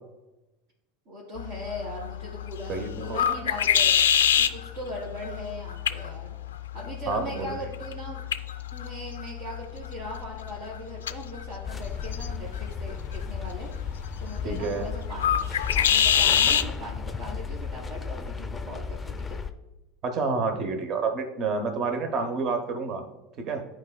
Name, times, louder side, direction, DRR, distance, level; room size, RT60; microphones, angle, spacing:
voice 1, 1.1-4.0 4.5-6.3 6.7-8.3 8.7-13.7 14.2-15.4 15.7-19.4, equal, 75° right, -8 dB, 2.2 m, -39 dB
sound 1, 1.4-16.7, left 9 dB, 85° left, 0.3 m, -27 dB
voice 2, 2.7-3.2 7.1-7.5 14.4-14.9 20.0-23.0 23.4-23.6, right 4 dB, 45° right, 7 dB, 0.8 m, -29 dB
sound 2, 11.6-19.5, left 5 dB, 15° left, 0.5 m, -35 dB
10.5 x 4.4 x 2.2 m, 1.0 s
hypercardioid pair, 85°, 0 cm